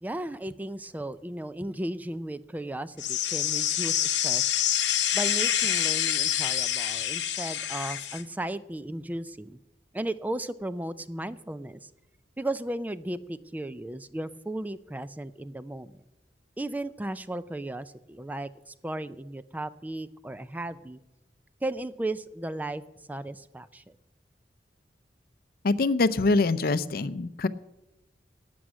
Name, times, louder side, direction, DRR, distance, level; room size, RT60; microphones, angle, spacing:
voice 1, 0.0-4.5 5.1-9.6 9.9-11.9 12.4-16.0 16.6-21.0 21.6-22.8 23.1-24.0, right 1 dB, 10° right, 14 dB, 0.3 m, -35 dB
sound 1, 3.0-8.2, left 11 dB, 90° left, 0.9 m, -27 dB
voice 2, 25.6-27.5, left 3 dB, 55° left, 15 dB, 0.5 m, -24 dB
12.5 x 6.2 x 9.3 m, 0.98 s
head